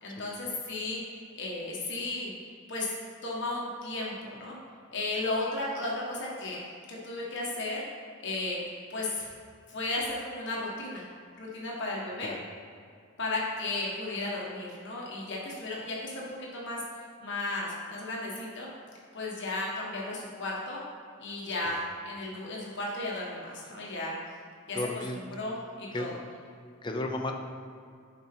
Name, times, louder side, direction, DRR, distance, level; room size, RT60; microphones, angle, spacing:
voice 1, 0.0-2.3 2.7-2.9 3.2-4.6 4.9-6.6 6.9-7.8 8.2-8.6 8.9-9.3 9.7-11.0 11.4-12.3 13.2-16.8 17.2-18.7 19.1-20.8 21.2-24.1 24.7-24.8 25.1-26.2, left 2 dB, 55° left, -4 dB, 1.5 m, -34 dB
voice 2, 24.7-25.2 25.9-26.1 26.8-27.3, left 2 dB, 20° left, 2 dB, 0.6 m, -33 dB
10.5 x 4.4 x 4.4 m, 2.3 s
head